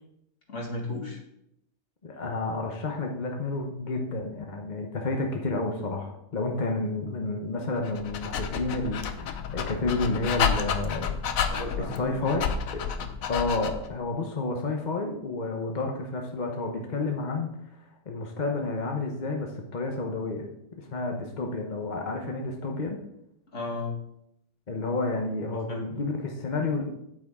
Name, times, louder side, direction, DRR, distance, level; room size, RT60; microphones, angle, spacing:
voice 1, 0.5-1.2 11.5-12.3 12.8-12.9 23.5-23.9 25.5-25.8, left 2 dB, 55° left, -1 dB, 2.4 m, -35 dB
voice 2, 2.0-11.2 12.0-12.4 12.7-12.8 13.3-17.6 18.1-20.5 20.8-23.0 24.7-26.8, left 3 dB, 35° left, 2 dB, 1.0 m, -30 dB
Dog, 7.8-13.9, left 7 dB, 75° left, 1.2 m, -30 dB
8.8 x 8.6 x 3.6 m, 0.79 s
omnidirectional pair, 1.5 m